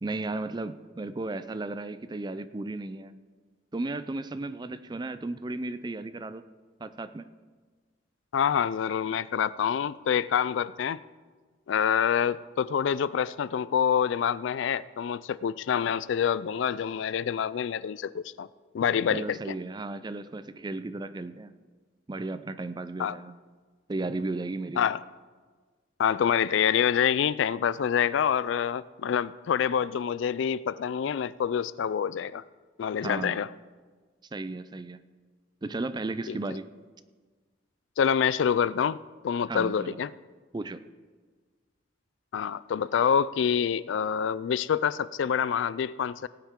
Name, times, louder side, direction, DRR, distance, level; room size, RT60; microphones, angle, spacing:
voice 1, 0.0-3.1 3.7-6.4 6.8-7.2 19.1-21.5 22.1-23.3 23.9-24.8 33.0-33.4 34.3-35.0 35.6-36.7 39.5-40.0 40.5-40.8, right 2 dB, 20° right, 13 dB, 0.4 m, -34 dB
voice 2, 8.3-11.0 11.7-18.5 18.7-19.5 23.0-23.2 24.8-25.0 26.0-32.4 32.8-33.5 36.3-36.4 38.0-39.0 39.2-40.1 42.3-46.3, left 8 dB, 65° left, 18 dB, 0.3 m, -26 dB
18.5 x 9.0 x 3.7 m, 1.4 s
head